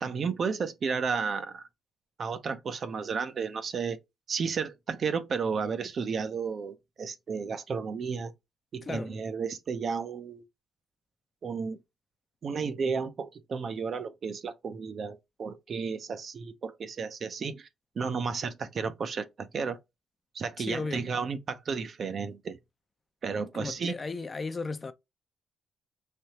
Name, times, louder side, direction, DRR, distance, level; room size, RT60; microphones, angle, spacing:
voice 1, 0.0-1.6 2.2-4.0 4.3-8.3 8.7-10.4 11.4-11.8 12.4-17.7 18.0-19.8 20.3-22.6 23.2-24.0, right 5 dB, 50° right, 0.6 m, -33 dB
voice 2, 8.8-9.1 20.6-21.0 23.5-24.9, left 4 dB, 30° left, 0.5 m, -35 dB
3.3 x 2.7 x 2.8 m
cardioid pair, 90°, 0 cm